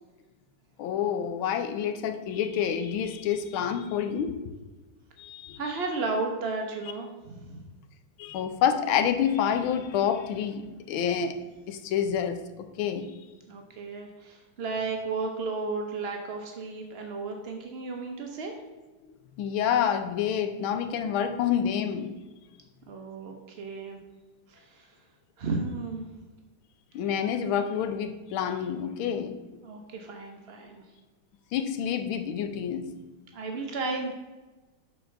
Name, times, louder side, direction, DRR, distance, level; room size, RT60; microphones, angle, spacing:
voice 1, 0.8-4.5 5.2-5.6 8.2-11.4 11.7-13.1 19.4-22.1 26.9-29.4 31.5-32.9, left 8 dB, 85° left, 8 dB, 1.5 m, -28 dB
voice 2, 5.6-7.6 13.5-18.5 22.9-24.0 24.5-24.9 25.4-26.1 29.6-30.8 33.3-34.1, right 3 dB, 75° right, 3 dB, 0.5 m, -34 dB
6.8 x 4.3 x 5.6 m, 1.2 s
omnidirectional pair, 2.2 m